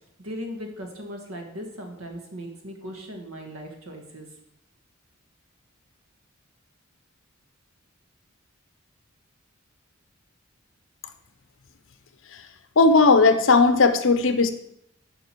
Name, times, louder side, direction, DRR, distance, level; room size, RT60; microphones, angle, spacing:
voice 1, 0.2-4.3, equal, 85° right, 3 dB, 1.8 m, -38 dB
voice 2, 12.8-14.5, left 3 dB, 65° left, 9 dB, 0.8 m, -17 dB
10.0 x 5.3 x 4.6 m, 0.74 s
head